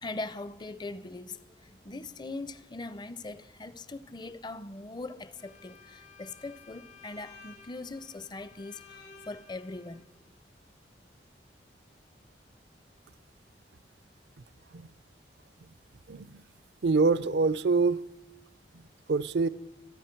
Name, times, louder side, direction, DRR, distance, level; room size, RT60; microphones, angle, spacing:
voice 1, 0.0-10.1, left 2 dB, 25° left, 0.5 m, -41 dB
Bowed string instrument, 5.4-10.1, left 5 dB, 80° left, 2.5 m, -54 dB
voice 2, 16.1-16.4 16.8-18.0 19.1-19.5, right 4 dB, 70° right, 0.5 m, -25 dB
25.5 x 9.1 x 4.5 m
head